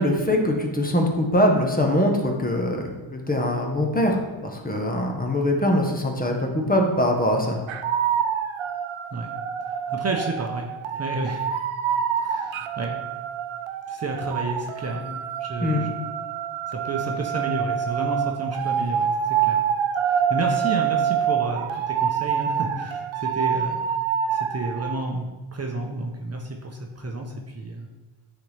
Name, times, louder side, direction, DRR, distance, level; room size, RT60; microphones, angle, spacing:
voice 1, 0.0-4.2 4.4-7.6 15.6-15.8, left 1 dB, 20° left, 1 dB, 1.0 m, -22 dB
sound 1, 7.7-24.9, right 8 dB, 70° right, 0.6 m, -26 dB
voice 2, 9.6-10.7 11.0-11.6 12.2-13.1 13.9-16.0 16.7-19.6 20.0-23.8 24.3-27.9, right 2 dB, 30° right, 1 dB, 0.8 m, -31 dB
9.1 x 4.1 x 3.4 m, 1.2 s
cardioid pair, 100°, 49 cm